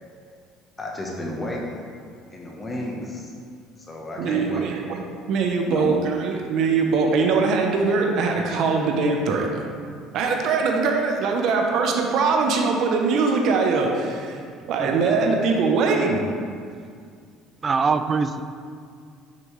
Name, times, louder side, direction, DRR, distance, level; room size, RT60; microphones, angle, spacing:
voice 1, 0.8-1.8 2.3-3.3 3.8-4.7 5.7-6.0, left 1 dB, 20° left, -1 dB, 1.0 m, -32 dB
voice 2, 4.2-5.0 5.3-9.6 10.1-14.4 14.7-16.2, right 4 dB, 60° right, 2 dB, 0.7 m, -22 dB
voice 3, 17.6-18.4, right 5 dB, 30° right, 10 dB, 0.3 m, -23 dB
6.6 x 5.4 x 3.2 m, 2.2 s
supercardioid pair, 110°, 0 cm